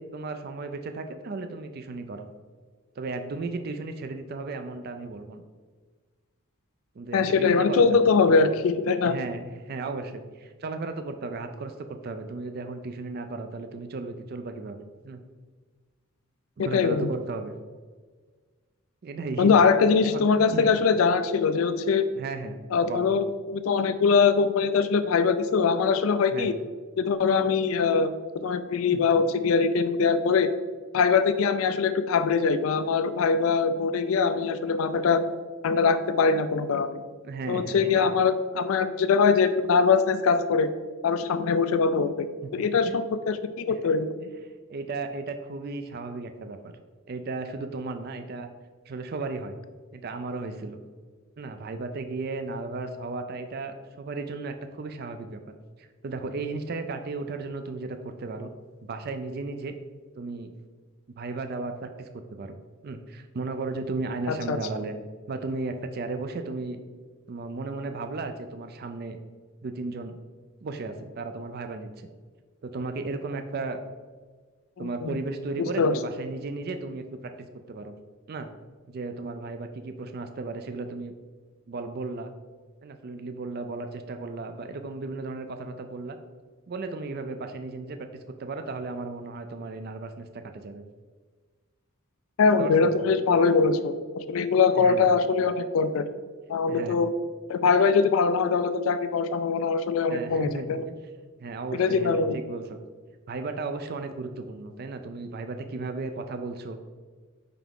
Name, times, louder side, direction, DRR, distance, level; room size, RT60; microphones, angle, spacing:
voice 1, 0.0-2.3 3.0-5.4 7.0-8.4 9.0-15.2 16.6-17.6 19.0-19.5 20.0-20.7 22.1-23.1 26.3-26.5 28.9-29.0 37.2-38.0 42.4-42.5 42.9-43.1 43.7-43.8 44.4-46.7 47.1-48.5 48.9-49.6 49.9-50.8 51.4-55.4 55.8-58.5 58.8-59.7 60.2-60.5 61.2-62.6 62.8-64.9 65.3-66.8 67.3-69.2 69.6-70.2 70.6-72.1 72.6-73.8 74.8-77.0 77.7-77.9 78.3-78.5 78.9-81.1 81.7-82.3 82.8-86.2 86.7-88.0 88.4-90.3 90.5-90.8 92.6-92.9 94.7-95.0 96.7-97.0 100.1-101.0 101.4-102.8 103.3-106.8, right 3 dB, 45° right, 7 dB, 0.4 m, -35 dB
voice 2, 7.1-9.1 16.7-17.1 19.4-22.0 22.7-26.5 27.0-28.1 28.4-30.5 30.9-35.2 35.6-37.0 37.5-40.7 41.0-42.3 42.5-44.1 64.3-64.6 75.0-75.1 75.8-76.0 92.4-96.1 96.5-97.1 97.5-100.9 101.8-102.4, left 5 dB, 70° left, 11 dB, 0.4 m, -22 dB
5.7 x 4.8 x 3.6 m, 1.5 s
head